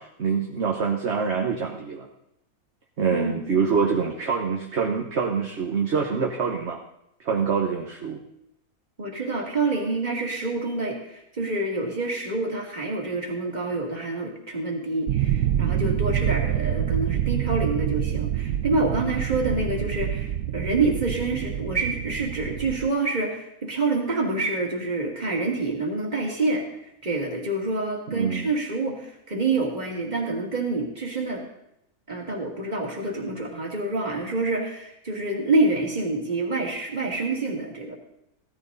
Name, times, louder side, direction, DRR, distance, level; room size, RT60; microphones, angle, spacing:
voice 1, 0.0-2.1 3.0-6.8 7.2-8.2 28.1-28.5, right 5 dB, 50° right, 1 dB, 1.5 m, -25 dB
voice 2, 9.0-26.6 27.0-31.4 32.1-37.9, right 3 dB, 30° right, -1 dB, 2.7 m, -27 dB
sound 1, 15.1-22.9, right 11 dB, 70° right, 1.0 m, -26 dB
16.5 x 14.0 x 4.1 m, 0.80 s
omnidirectional pair, 1.6 m